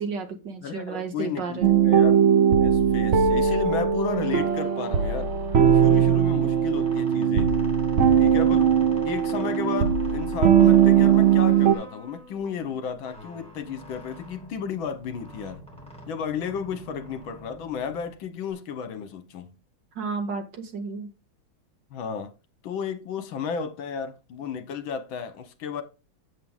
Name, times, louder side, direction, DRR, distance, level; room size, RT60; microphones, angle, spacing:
voice 1, 0.0-1.8 20.0-21.1, right 4 dB, 60° right, 2.0 m, -32 dB
voice 2, 0.6-2.2 2.6-5.3 5.7-7.5 8.2-8.8 9.0-15.6 16.1-19.5 21.9-22.3 22.6-25.8, left 6 dB, 70° left, 1.7 m, -33 dB
sound 1, 1.6-11.7, right 8 dB, 85° right, 0.6 m, -20 dB
sound 2, 4.0-18.5, equal, 5° left, 2.6 m, -46 dB
8.0 x 7.5 x 3.6 m
omnidirectional pair, 2.3 m